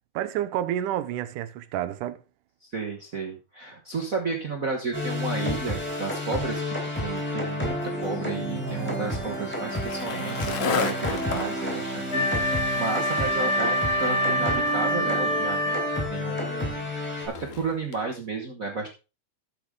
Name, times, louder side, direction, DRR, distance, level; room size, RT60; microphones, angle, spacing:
voice 1, 0.1-2.2, right 11 dB, 90° right, 2.3 m, -29 dB
voice 2, 2.6-18.9, right 4 dB, 60° right, 0.9 m, -33 dB
sound 1, 4.9-17.3, equal, 5° left, 3.6 m, -31 dB
Skateboard, 7.5-18.0, left 7 dB, 70° left, 2.5 m, -36 dB
Wind instrument woodwind instrument, 12.1-16.1, equal, 45° left, 3.0 m, -26 dB
12.0 x 7.9 x 3.7 m
omnidirectional pair, 3.6 m